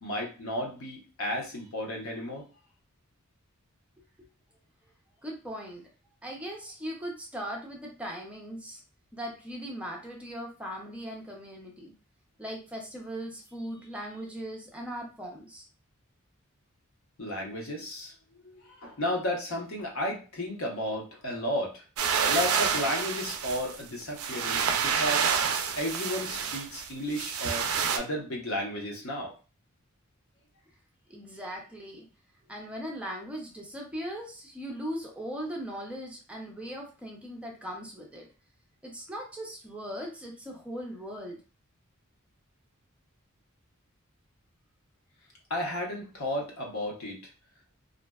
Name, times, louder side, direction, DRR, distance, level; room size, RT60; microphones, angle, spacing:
voice 1, 0.0-2.5 17.2-18.1 18.4-21.8 22.2-25.3 25.8-29.4 45.5-47.2, left 1 dB, 75° left, -1 dB, 0.8 m, -33 dB
voice 2, 5.2-5.8 6.2-8.8 9.1-11.9 12.4-15.7 31.1-32.1 32.5-38.3 38.8-41.4, equal, 5° right, -1 dB, 0.4 m, -39 dB
sound 1, 22.0-28.0, right 6 dB, 85° right, 0.4 m, -28 dB
2.6 x 2.1 x 2.2 m, 0.34 s
head